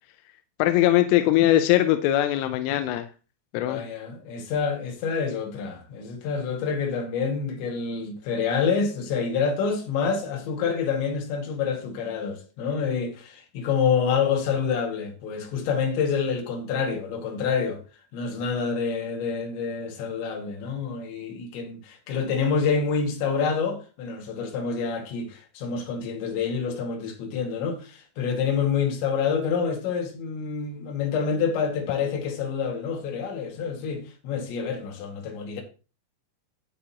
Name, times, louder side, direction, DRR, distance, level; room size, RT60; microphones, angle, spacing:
voice 1, 0.6-3.1 3.5-3.8, left 13 dB, 90° left, 3.2 m, -21 dB
voice 2, 3.5-17.8 18.1-35.6, left 6 dB, 70° left, 4.1 m, -27 dB
12.0 x 8.8 x 2.9 m
omnidirectional pair, 5.6 m